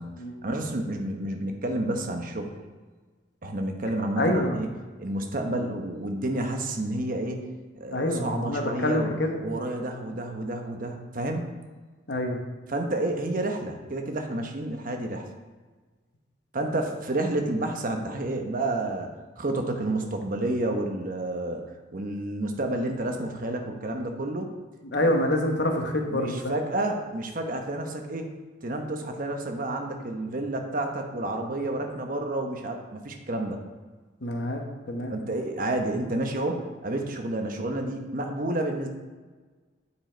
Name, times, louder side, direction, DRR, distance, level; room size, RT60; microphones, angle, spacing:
voice 1, 0.4-2.6 3.4-4.7 5.0-7.5 7.8-9.1 9.4-11.5 12.7-15.2 16.5-19.1 19.4-21.6 21.9-24.5 26.1-28.3 28.6-33.6 35.1-38.9, right 1 dB, 50° right, 4 dB, 0.9 m, -30 dB
voice 2, 4.2-4.6 7.9-9.4 12.1-12.4 24.8-26.7 34.2-34.6 34.9-35.2, left 1 dB, 65° left, 3 dB, 1.1 m, -26 dB
8.5 x 5.0 x 4.4 m, 1.4 s
head